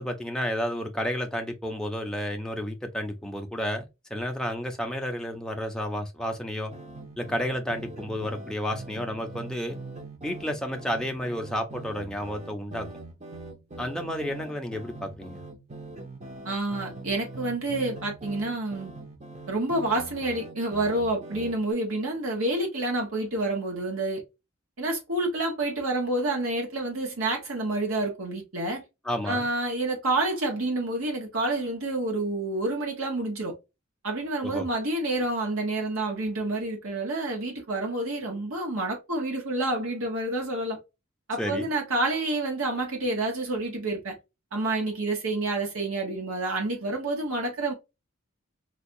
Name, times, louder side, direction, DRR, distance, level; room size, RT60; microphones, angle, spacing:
voice 1, 0.0-6.7 7.2-9.8 10.2-12.9 13.8-15.4 29.0-29.5 34.4-34.7 41.4-41.7, equal, 5° left, 0.6 m, -31 dB
sound 1, 6.7-21.7, right 2 dB, 35° right, 0.8 m, -42 dB
voice 2, 16.4-18.9 19.5-24.2 24.8-28.8 29.3-33.5 34.0-40.8 41.3-44.1 44.5-47.7, right 2 dB, 75° right, 1.2 m, -28 dB
4.5 x 2.3 x 2.6 m
head